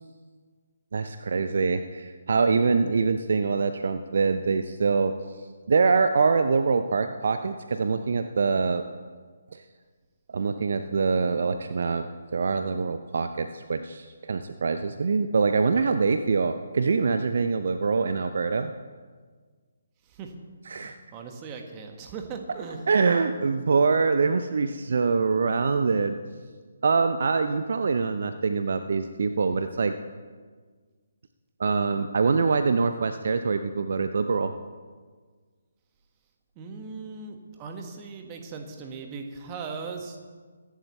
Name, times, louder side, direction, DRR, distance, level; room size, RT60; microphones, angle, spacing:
voice 1, 0.9-5.2 5.7-8.8 9.5-9.6 10.3-12.1 12.3-18.7 20.7-21.0 22.9-26.2 26.8-29.9 31.6-34.5, right 4 dB, 55° right, 9 dB, 0.6 m, -24 dB
voice 2, 20.7-22.9 36.6-40.2, right 5 dB, 20° right, 4 dB, 1.6 m, -38 dB
23.0 x 11.0 x 3.2 m, 1.5 s
figure-of-eight pair, 140°, 0 cm